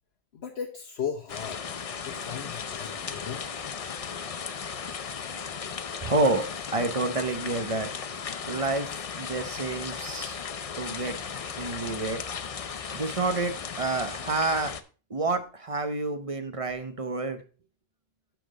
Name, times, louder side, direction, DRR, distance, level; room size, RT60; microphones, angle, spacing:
voice 1, 0.3-1.6 2.0-3.5, left 7 dB, 90° left, 1 dB, 1.2 m, -36 dB
sound 1, 1.3-14.8, left 6 dB, 45° left, 0.6 m, -36 dB
voice 2, 6.0-6.4 6.7-7.9 8.5-10.4 10.8-11.1 11.6-12.2 12.7-14.7 15.1-17.4, right 3 dB, 35° right, 8 dB, 0.9 m, -29 dB
7.1 x 6.0 x 4.9 m, 0.36 s
omnidirectional pair, 1.0 m